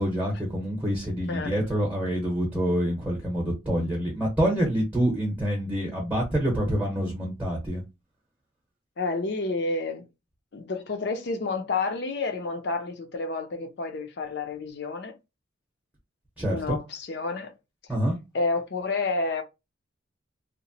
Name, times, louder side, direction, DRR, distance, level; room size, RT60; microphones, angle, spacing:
voice 1, 0.0-7.8 16.4-16.8 17.9-18.2, equal, 5° right, 0.8 m, -26 dB
voice 2, 9.0-10.0 10.5-15.1 16.5-17.5 18.3-19.4, left 3 dB, 55° left, 0.5 m, -29 dB
2.9 x 2.1 x 2.7 m
head